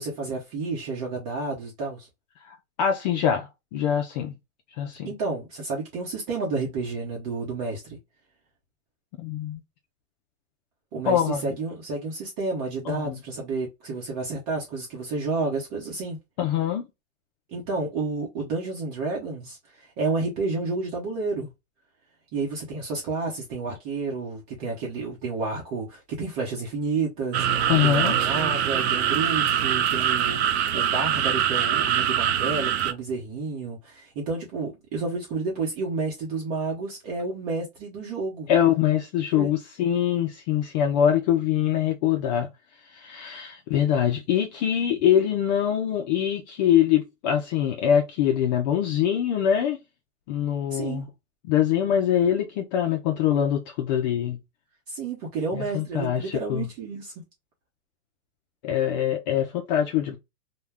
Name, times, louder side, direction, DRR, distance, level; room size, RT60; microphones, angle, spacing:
voice 1, 0.0-2.1 5.0-8.0 10.9-16.2 17.5-21.5 22.3-38.5 39.3-39.5 50.7-51.1 54.9-57.1, right 3 dB, 35° right, 0.8 m, -30 dB
voice 2, 2.4-4.3 4.7-5.1 9.2-9.6 11.1-11.6 12.9-13.2 16.4-16.9 27.7-28.1 38.5-42.5 42.9-49.8 50.3-51.1 51.4-54.4 55.5-56.7 58.6-60.2, left 9 dB, 40° left, 0.4 m, -24 dB
sound 1, 27.3-32.9, right 9 dB, 60° right, 0.5 m, -23 dB
2.2 x 2.2 x 3.3 m
hypercardioid pair, 130°, 37 cm